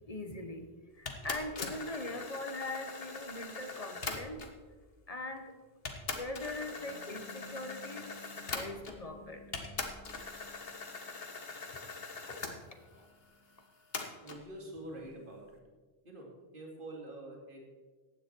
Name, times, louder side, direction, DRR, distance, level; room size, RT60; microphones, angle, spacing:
voice 1, 0.1-0.7 1.0-4.5 5.1-5.5 6.1-11.4 11.7-11.9 12.3-13.1, left 2 dB, 35° left, 6 dB, 1.3 m, -42 dB
sound 1, 1.1-4.6 5.4-5.5 5.9-9.1 9.5-12.6 13.9-14.4, left 4 dB, 60° left, 1.5 m, -42 dB
voice 2, 14.2-15.6 16.0-17.6, right 1 dB, 50° right, 0 dB, 2.6 m, -46 dB
15.0 x 9.6 x 4.6 m, 1.3 s
omnidirectional pair, 1.1 m